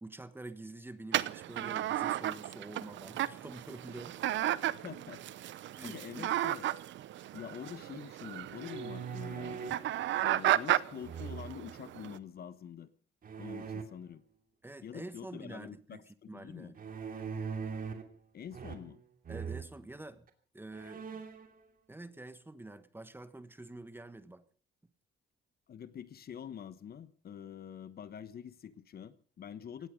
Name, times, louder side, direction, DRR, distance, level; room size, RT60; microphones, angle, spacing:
voice 1, 0.0-4.2 5.7-6.3 14.6-16.0 16.3-16.8 19.3-20.3 20.5-21.2 21.9-24.4, right 2 dB, 10° right, 1.3 m, -47 dB
sound 1, 1.1-12.2, right 13 dB, 75° right, 0.8 m, -34 dB
voice 2, 4.7-5.5 5.8-6.7 7.3-9.8 10.2-12.9 13.4-14.2 14.8-16.7 18.3-19.0 25.7-29.9, left 8 dB, 50° left, 1.3 m, -46 dB
sound 2, 8.5-9.9 11.0-11.7 13.2-13.8 16.8-18.1 18.5-19.0 19.3-19.7 20.3-20.4 20.7-21.5, right 6 dB, 45° right, 2.7 m, -41 dB
18.0 x 15.0 x 5.2 m
cardioid pair, 115°, 19 cm